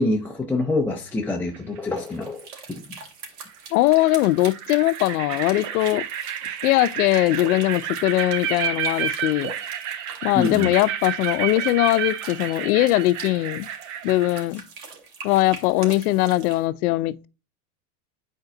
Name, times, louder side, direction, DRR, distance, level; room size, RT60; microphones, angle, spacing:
voice 1, 0.0-2.4 2.7-2.8 10.4-10.7, left 2 dB, 5° left, 0.5 m, -25 dB
sound 1, 1.5-2.0 3.5-3.6 4.0-14.5, right 9 dB, 40° right, 0.7 m, -31 dB
sound 2, 1.9-16.6, right 5 dB, 85° right, 2.7 m, -42 dB
voice 2, 3.7-6.0 6.6-9.5 10.2-13.7 14.0-14.6 15.2-17.3, left 17 dB, 80° left, 0.6 m, -21 dB
9.0 x 4.4 x 3.8 m
supercardioid pair, 140°, 44 cm